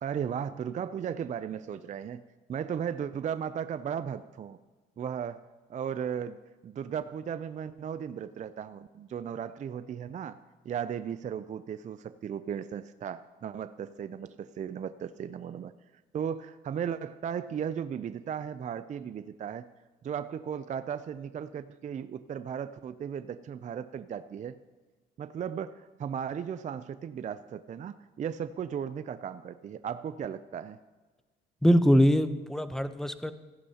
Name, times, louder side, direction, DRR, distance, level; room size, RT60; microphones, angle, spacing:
voice 1, 0.0-2.2 2.5-4.6 5.0-5.4 5.7-6.4 6.6-10.4 10.6-15.7 16.1-19.7 20.0-24.6 25.2-30.8, right 8 dB, 40° right, 12 dB, 0.4 m, -36 dB
voice 2, 31.6-33.3, equal, ahead, 12 dB, 0.6 m, -23 dB
15.5 x 11.0 x 2.8 m, 1.3 s
cardioid pair, 90°, 20 cm